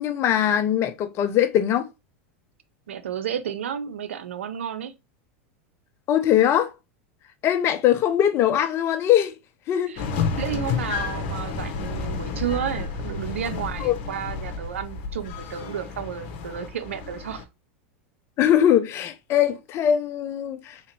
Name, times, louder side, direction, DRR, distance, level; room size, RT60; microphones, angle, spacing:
voice 1, 0.0-1.9 6.1-6.7 7.4-9.3 9.7-9.9 13.8-13.9 18.4-20.8, left 10 dB, 40° left, 0.7 m, -21 dB
voice 2, 2.9-4.9 9.9-10.0 10.3-17.5, right 9 dB, 90° right, 0.6 m, -32 dB
sound 1, 10.0-17.4, left 5 dB, 60° left, 1.0 m, -31 dB
3.8 x 2.9 x 2.9 m
hypercardioid pair, 110°, 7 cm